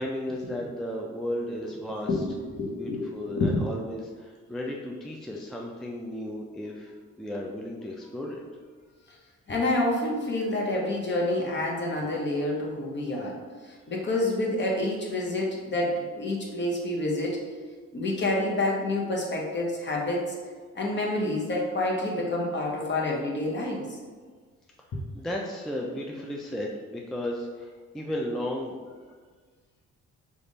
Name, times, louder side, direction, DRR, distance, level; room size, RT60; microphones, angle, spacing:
voice 1, 0.0-2.2 2.8-8.4 16.5-16.6 24.8-28.8, left 1 dB, ahead, -1 dB, 0.3 m, -34 dB
voice 2, 2.6-3.6 9.5-13.4 13.6-17.5 17.9-20.4 20.7-23.9, left 2 dB, 35° left, -2 dB, 1.0 m, -28 dB
3.4 x 2.5 x 3.9 m, 1.5 s
cardioid pair, 90°, 30 cm